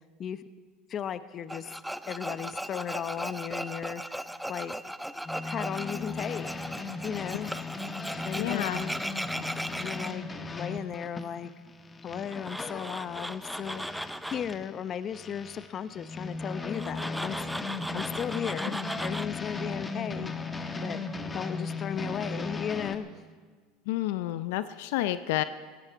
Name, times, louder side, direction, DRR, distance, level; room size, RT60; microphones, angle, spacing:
voice 1, 0.9-1.7 2.1-4.2 4.5-4.8 5.4-6.5 7.0-7.5 8.2-9.0 9.8-11.5 12.0-13.9 14.3-17.4 17.9-20.3 20.8-21.0 21.3-23.1, left 8 dB, 40° left, 14 dB, 0.7 m, -35 dB
Tools, 1.5-10.1 12.3-14.5 16.7-19.3, equal, ahead, 0.5 m, -37 dB
sound 1, 5.2-14.7 15.1-23.0, left 3 dB, 20° left, 1.2 m, -37 dB
voice 2, 8.4-8.8 23.9-25.4, left 15 dB, 75° left, 13 dB, 0.5 m, -30 dB
18.0 x 16.0 x 4.7 m, 1.5 s
supercardioid pair, 100°, 0 cm